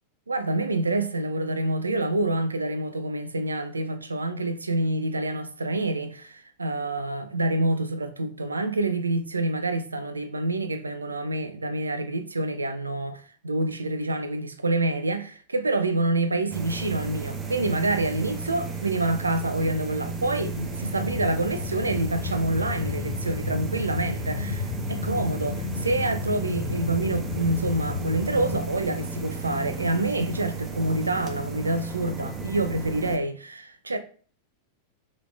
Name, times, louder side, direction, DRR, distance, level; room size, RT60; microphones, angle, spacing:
voice 1, 0.3-34.0, right 2 dB, 80° right, 0.4 m, -27 dB
sound 1, 16.5-33.2, right 4 dB, 20° right, 0.7 m, -34 dB
sound 2, 20.8-28.6, left 9 dB, 45° left, 0.3 m, -33 dB
5.0 x 3.1 x 2.3 m
figure-of-eight pair, 90°, 0 cm